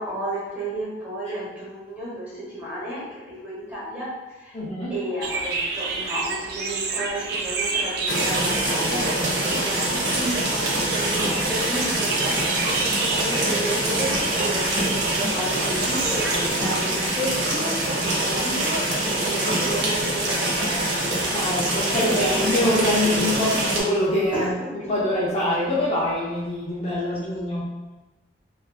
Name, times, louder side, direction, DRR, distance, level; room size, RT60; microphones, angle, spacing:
voice 1, 0.0-4.6 4.9-21.1 21.3-22.4 24.3-24.9, right 1 dB, 10° right, -9 dB, 0.9 m, -32 dB
voice 2, 4.5-4.9 21.3-24.5 24.9-27.7, left 1 dB, 35° left, -6 dB, 0.4 m, -24 dB
sound 1, 5.2-16.5, right 4 dB, 60° right, 0.3 m, -30 dB
sound 2, 8.1-23.8, right 1 dB, 80° right, 0.7 m, -24 dB
2.6 x 2.3 x 2.3 m, 1.1 s
head